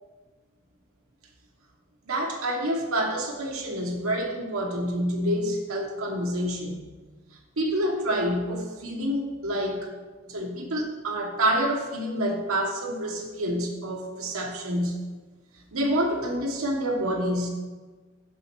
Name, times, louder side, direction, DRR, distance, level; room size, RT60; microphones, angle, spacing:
voice 1, 2.1-6.8 7.6-9.9 10.3-15.0 15.7-17.5, right 1 dB, 90° right, 1 dB, 1.1 m, -27 dB
7.4 x 4.1 x 6.0 m, 1.3 s
head